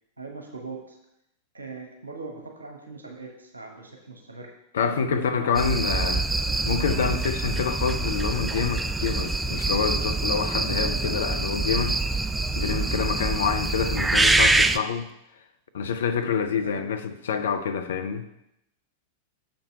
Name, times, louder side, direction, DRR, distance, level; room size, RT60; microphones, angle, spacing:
voice 1, 0.2-1.0 1.5-4.5 5.1-5.8 16.6-16.9, right 3 dB, 75° right, 2 dB, 1.0 m, -40 dB
voice 2, 4.7-6.3 6.7-12.0 12.6-15.1 15.7-18.3, left 6 dB, 65° left, 8 dB, 0.6 m, -27 dB
sound 1, 5.5-14.8, right 3 dB, 10° right, 0.3 m, -25 dB
7.1 x 5.2 x 4.7 m, 0.82 s
figure-of-eight pair, 90°, 0 cm